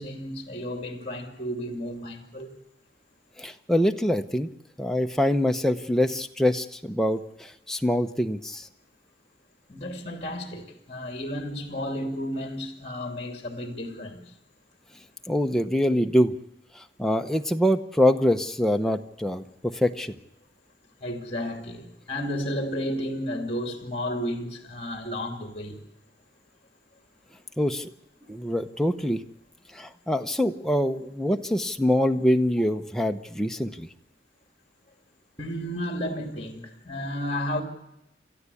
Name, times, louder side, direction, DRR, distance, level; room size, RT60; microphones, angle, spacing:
voice 1, 0.0-2.6 9.7-14.2 21.0-25.8 35.4-37.6, equal, 30° left, 2.7 m, -32 dB
voice 2, 3.4-4.5 4.8-8.7 15.3-16.3 16.8-20.1 27.6-27.9 28.3-29.2 29.7-33.9, equal, ahead, 0.7 m, -24 dB
29.5 x 13.5 x 8.4 m
head